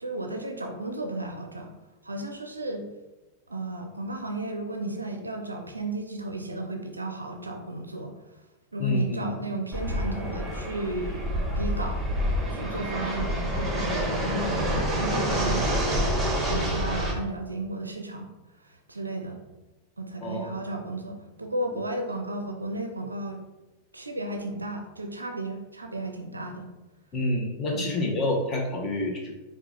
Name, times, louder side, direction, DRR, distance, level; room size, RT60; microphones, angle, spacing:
voice 1, 0.0-1.7 2.0-2.9 3.5-8.1 8.7-11.3 11.6-12.0 12.5-15.7 16.5-18.3 18.6-19.4 20.0-23.4 23.9-26.7 27.7-27.9, right 2 dB, 80° right, 4 dB, 0.5 m, -34 dB
voice 2, 8.8-9.3 20.2-20.6 27.1-29.3, left 1 dB, 25° left, 0 dB, 1.0 m, -28 dB
Fixed-wing aircraft airplane, 9.7-17.1, equal, 10° right, 1.0 m, -27 dB
4.5 x 2.3 x 3.8 m, 1.1 s
figure-of-eight pair, 90°, 0 cm